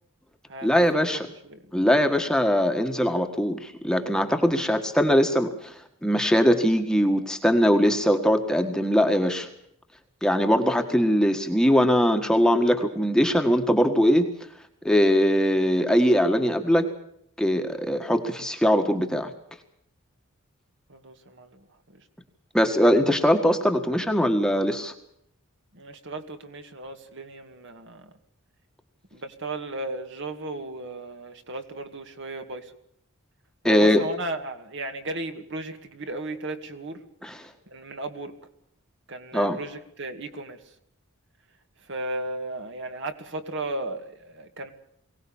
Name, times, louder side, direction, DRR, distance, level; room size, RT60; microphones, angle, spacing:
voice 1, 0.6-1.3 1.7-5.7 6.0-9.5 10.2-14.3 14.8-16.9 17.4-19.3 22.5-24.9 33.6-34.0 37.2-37.4 39.3-39.6, equal, 5° left, 5 dB, 1.6 m, -21 dB
voice 2, 20.9-22.0 25.7-28.1 29.1-32.7 33.6-37.0 37.7-38.3 39.1-40.6 41.9-44.7, right 2 dB, 55° right, 7 dB, 2.3 m, -35 dB
23.0 x 18.0 x 7.2 m, 0.73 s
head